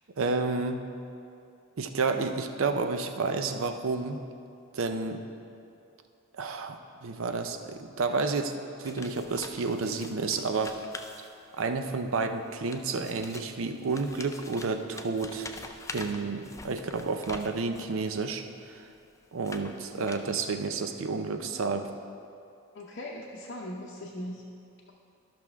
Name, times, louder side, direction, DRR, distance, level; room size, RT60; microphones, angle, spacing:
voice 1, 0.2-0.8 1.8-4.2 4.7-5.2 6.3-8.5 8.8-10.8 11.6-15.5 15.9-18.9 19.3-21.9, right 4 dB, 65° right, 7 dB, 0.5 m, -30 dB
sound 1, 8.8-11.8 12.5-18.0 18.6-20.6, left 3 dB, 15° left, 0.3 m, -45 dB
voice 2, 22.7-24.4, left 1 dB, 50° left, -3 dB, 0.7 m, -39 dB
13.0 x 6.0 x 3.5 m, 2.6 s
head